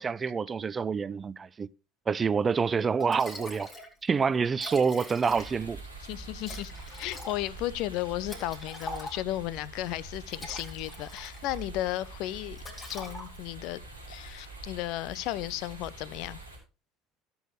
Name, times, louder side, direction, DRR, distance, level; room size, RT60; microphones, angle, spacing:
voice 1, 0.0-1.7 2.1-3.7 4.0-5.8, right 5 dB, 25° right, 0.4 m, -27 dB
Liquid, 2.6-2.7 3.0-3.9 4.2-4.3 4.5-5.8 6.4-9.5 10.1-11.6 12.0-12.2 12.6-13.6, left 1 dB, 25° left, 3.5 m, -43 dB
sound 1, 5.3-16.6, right 2 dB, 90° left, 4.2 m, -45 dB
voice 2, 6.0-6.7 7.0-12.6 12.9-13.8 14.1-16.4, left 15 dB, 55° left, 0.5 m, -34 dB
16.5 x 7.1 x 3.2 m
figure-of-eight pair, 65°, 0 cm